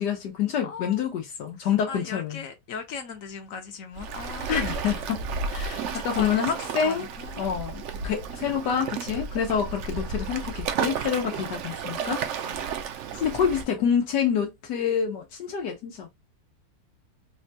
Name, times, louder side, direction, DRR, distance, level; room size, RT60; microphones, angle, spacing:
voice 1, 0.0-2.4 4.5-7.1 7.4-12.2 13.2-16.1, left 7 dB, 90° left, 1.4 m, -27 dB
voice 2, 0.6-1.0 1.6-5.0 5.7-7.4 7.9-8.2 11.3-11.5 12.4-12.7 13.1-13.2 13.6-13.9, left 6 dB, 60° left, 1.1 m, -40 dB
Waves surf, 3.9-13.6, right 6 dB, 65° right, 0.7 m, -32 dB
4.2 x 2.2 x 2.7 m
omnidirectional pair, 1.8 m